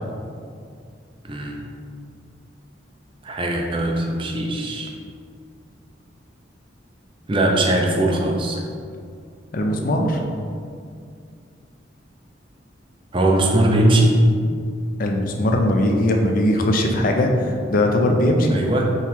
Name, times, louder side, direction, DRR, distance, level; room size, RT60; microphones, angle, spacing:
voice 1, 1.2-1.6 3.2-4.9 7.3-8.6 13.1-14.2 18.5-18.9, right 1 dB, 25° right, 1 dB, 0.4 m, -20 dB
voice 2, 9.5-10.2 15.0-18.6, left 1 dB, 45° left, 2 dB, 0.5 m, -19 dB
3.8 x 3.0 x 4.2 m, 2.2 s
head